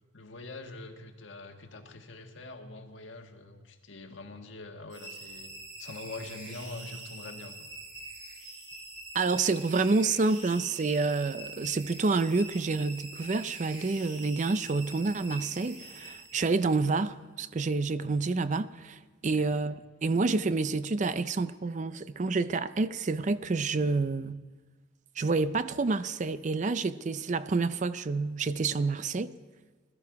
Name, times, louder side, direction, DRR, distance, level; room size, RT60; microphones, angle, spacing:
voice 1, 0.1-7.7 19.3-19.5, left 2 dB, 75° left, 1.5 m, -44 dB
sound 1, 4.9-16.8, right 2 dB, 80° right, 5.4 m, -45 dB
voice 2, 9.1-24.4 25.2-29.3, right 3 dB, 40° right, 0.4 m, -28 dB
20.5 x 13.5 x 4.7 m
head